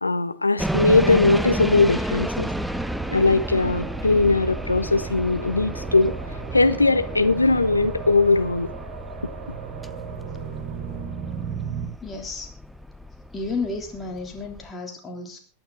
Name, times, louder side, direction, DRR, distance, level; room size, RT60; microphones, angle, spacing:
voice 1, 0.0-2.5 3.1-6.1 6.5-8.7, left 3 dB, 80° left, 11 dB, 1.0 m, -20 dB
sound 1, 0.6-14.7, equal, ahead, 0.6 m, -32 dB
sound 2, 2.3-11.9, right 7 dB, 45° right, 4.1 m, -36 dB
voice 2, 10.0-10.9 12.0-12.5 13.3-15.4, left 3 dB, 20° left, 2 dB, 3.4 m, -33 dB
22.5 x 9.0 x 4.0 m, 0.36 s
figure-of-eight pair, 90°, 0 cm